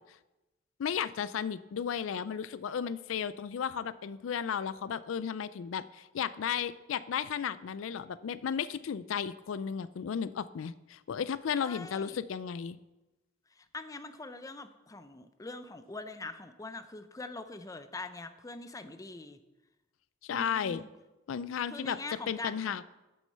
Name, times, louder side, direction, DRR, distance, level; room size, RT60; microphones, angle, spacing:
voice 1, 0.8-12.8 20.2-20.8 21.3-22.0 22.3-22.8, left 7 dB, 90° left, 16 dB, 0.4 m, -34 dB
voice 2, 11.6-12.2 13.6-19.4 20.3-20.9 21.7-22.8, left 3 dB, 15° left, 10 dB, 0.5 m, -43 dB
8.6 x 6.3 x 6.6 m, 1.0 s
head